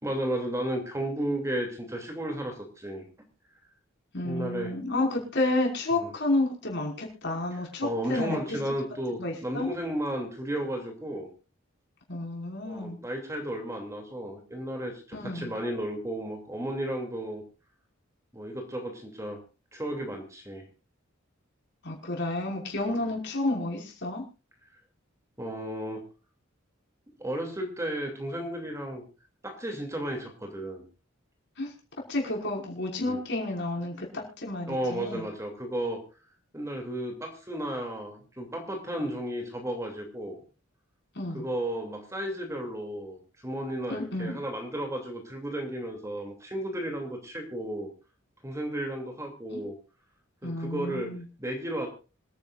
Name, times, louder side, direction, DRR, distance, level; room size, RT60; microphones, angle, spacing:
voice 1, 0.0-3.1 4.2-4.8 5.9-6.1 7.5-11.3 12.6-17.4 18.3-19.4 19.7-20.7 22.8-23.0 25.4-26.0 27.2-29.0 29.4-30.8 33.1-33.2 34.7-36.0 36.5-40.4 41.3-47.9 48.4-49.7 50.4-51.1 51.4-51.9, right 1 dB, 15° right, 3 dB, 2.8 m, -33 dB
voice 2, 4.1-8.6 9.2-9.7 12.1-13.0 15.1-15.5 21.8-24.2 31.6-31.7 32.1-35.2 41.2-41.5 43.9-44.4 49.5-49.6 50.4-51.2, left 2 dB, 60° left, -1 dB, 5.5 m, -30 dB
26.5 x 10.5 x 2.5 m, 0.33 s
head